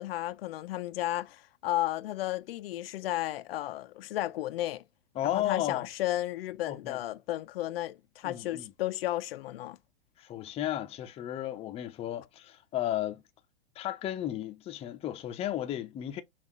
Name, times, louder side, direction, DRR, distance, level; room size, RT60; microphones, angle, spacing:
voice 1, 0.0-4.8 5.3-9.8, left 15 dB, 70° left, 0.5 m, -33 dB
voice 2, 5.2-5.9 6.7-7.0 8.2-8.7 10.2-13.2 13.8-16.2, left 12 dB, 20° left, 0.5 m, -34 dB
5.5 x 2.4 x 2.9 m
hypercardioid pair, 125°, 31 cm